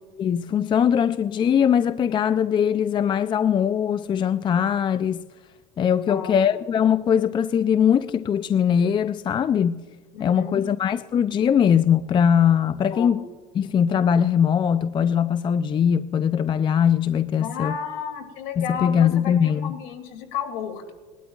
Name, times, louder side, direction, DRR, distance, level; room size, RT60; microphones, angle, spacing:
voice 1, 0.2-5.2 5.8-9.8 10.2-13.2 13.5-17.8 18.6-19.7, left 8 dB, 30° left, 0.4 m, -21 dB
voice 2, 6.1-6.6 10.1-10.6 12.9-13.2 17.4-20.9, left 7 dB, 65° left, 2.5 m, -33 dB
20.5 x 12.0 x 2.4 m
supercardioid pair, 95°, 16 cm